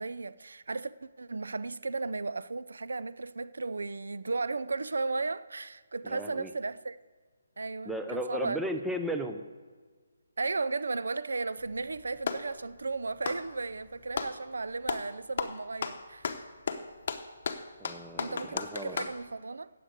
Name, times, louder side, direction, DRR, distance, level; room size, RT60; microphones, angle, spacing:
voice 1, 0.0-7.0 7.6-8.6 10.4-16.3 18.2-19.7, right 3 dB, 85° right, 0.5 m, -35 dB
voice 2, 6.0-6.5 7.9-9.4 17.8-19.1, equal, 5° right, 0.6 m, -35 dB
Clapping, 11.6-12.5 13.1-14.4 14.8-15.1 15.4-19.2, left 5 dB, 40° left, 0.9 m, -35 dB
10.0 x 7.9 x 8.2 m
hypercardioid pair, 170°, 0 cm